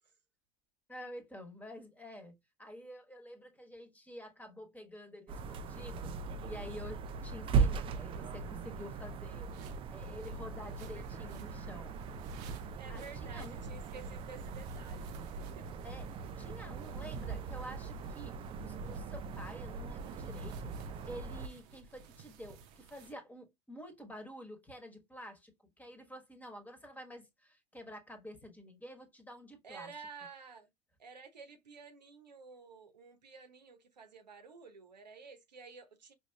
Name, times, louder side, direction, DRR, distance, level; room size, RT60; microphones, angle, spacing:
voice 1, 0.9-6.2 6.4-9.5 9.9-12.0 12.3-12.5 12.9-13.7 15.8-16.1 16.4-29.9, equal, 5° left, 1.2 m, -49 dB
sound 1, 5.3-21.5, right 5 dB, 25° right, 0.4 m, -39 dB
sound 2, 9.4-23.1, right 6 dB, 50° right, 0.7 m, -56 dB
voice 2, 10.8-11.3 12.8-15.8 29.6-30.7 31.0-36.1, right 4 dB, 80° right, 0.8 m, -52 dB
4.8 x 2.8 x 2.2 m
figure-of-eight pair, 80°, 21 cm